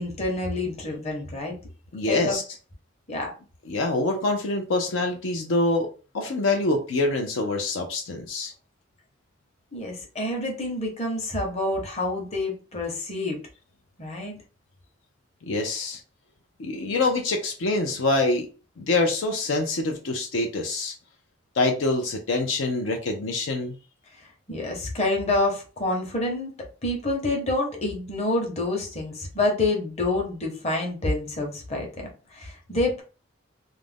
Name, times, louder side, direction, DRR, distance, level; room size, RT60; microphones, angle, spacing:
voice 1, 0.0-1.5 2.1-2.4 3.1-3.3 9.7-13.4 14.0-14.4 24.1-26.6 26.8-33.0, left 2 dB, 35° left, 1 dB, 0.8 m, -28 dB
voice 2, 1.9-2.4 3.7-8.5 15.4-16.0 16.6-18.5 18.8-20.9 21.5-23.7, left 2 dB, 75° left, 3 dB, 0.5 m, -25 dB
2.4 x 2.1 x 3.3 m, 0.34 s
head